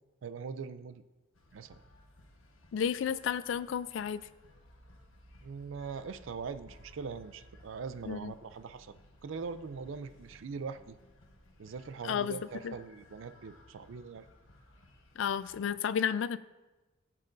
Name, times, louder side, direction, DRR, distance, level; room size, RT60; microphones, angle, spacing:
voice 1, 0.2-1.0 1.5-1.8 5.4-9.0 9.2-11.0 11.6-14.3, right 5 dB, 75° right, 12 dB, 0.4 m, -42 dB
sound 1, 1.3-15.8, left 1 dB, 85° left, 1.1 m, -59 dB
voice 2, 2.7-4.2 8.1-8.3 12.0-12.4 12.6-12.8 15.2-16.4, left 8 dB, 70° left, 15 dB, 0.3 m, -32 dB
14.0 x 7.5 x 2.6 m, 1.2 s
head